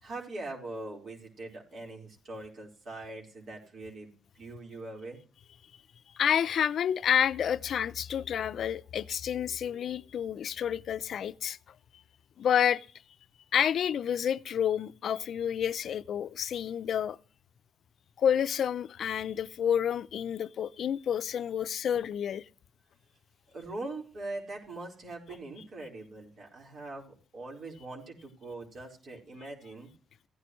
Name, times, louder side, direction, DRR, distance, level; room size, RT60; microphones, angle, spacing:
voice 1, 0.0-5.2 23.5-29.9, right 2 dB, 60° right, 4.4 m, -42 dB
voice 2, 6.1-11.6 12.4-12.9 13.5-17.2 18.2-22.5, left 9 dB, 70° left, 0.5 m, -29 dB
15.5 x 9.9 x 3.1 m
cardioid pair, 70°, 0 cm